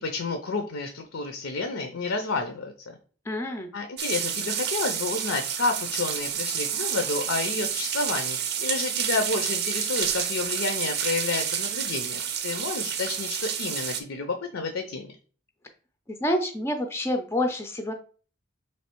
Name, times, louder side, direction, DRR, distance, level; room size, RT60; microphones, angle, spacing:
voice 1, 0.0-2.7 3.7-15.1, left 3 dB, 75° left, 6 dB, 0.5 m, -30 dB
voice 2, 3.3-3.7 16.2-17.9, left 1 dB, 15° left, 5 dB, 0.4 m, -27 dB
sound 1, 4.0-14.0, right 8 dB, 50° right, 0.5 m, -29 dB
3.2 x 3.1 x 4.4 m, 0.40 s
head